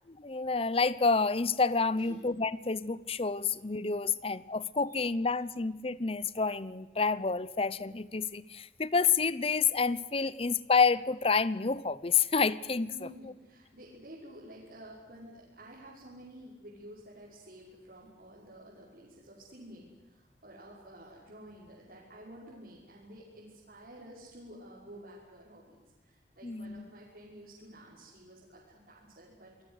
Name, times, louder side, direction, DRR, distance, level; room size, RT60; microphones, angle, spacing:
voice 1, 0.1-13.3 26.4-26.9, left 4 dB, 30° left, 19 dB, 0.8 m, -29 dB
voice 2, 12.9-29.6, right 1 dB, 55° right, -6 dB, 5.9 m, -51 dB
27.5 x 21.0 x 8.2 m, 1.1 s
head